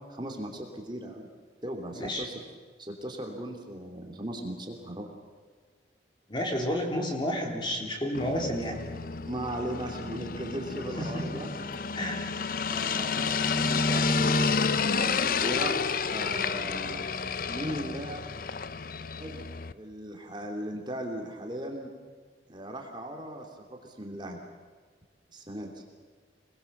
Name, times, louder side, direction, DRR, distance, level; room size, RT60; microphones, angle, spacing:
voice 1, 0.1-1.3 1.6-2.4 2.8-5.1 9.2-11.5 12.7-15.7 16.1-17.0 17.5-18.2 19.2-19.4 19.7-21.9 22.5-24.4 25.3-25.8, right 1 dB, 25° right, 2 dB, 2.9 m, -38 dB
voice 2, 1.9-2.3 6.3-8.8 11.0-11.7 11.9-12.2, equal, 25° left, 1 dB, 3.6 m, -31 dB
sound 1, 8.1-19.7, left 5 dB, 50° left, 0.7 m, -30 dB
27.0 x 20.5 x 7.2 m, 1.5 s
head